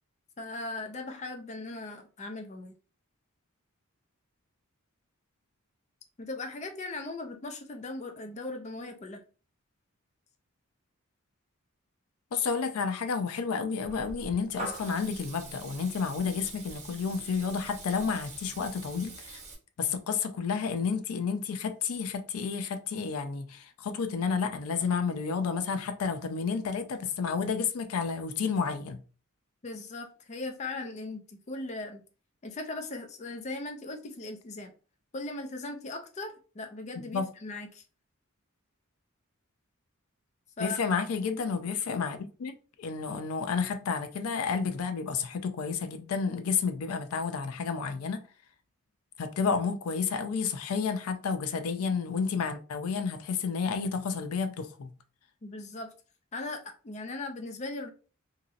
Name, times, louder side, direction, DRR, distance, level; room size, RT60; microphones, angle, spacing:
voice 1, 0.4-2.8 6.2-9.2 29.6-32.0 32.4-34.7 35.1-37.8 40.6-40.8 55.4-55.9 56.3-57.9, left 2 dB, 30° left, 0.4 m, -38 dB
voice 2, 12.3-19.4 19.8-29.0 37.1-37.3 40.6-48.2 49.2-54.9, left 5 dB, 90° left, 0.4 m, -31 dB
Water tap faucet / Liquid, 13.8-19.5, right 2 dB, 30° right, 0.8 m, -44 dB
2.9 x 2.6 x 2.5 m
head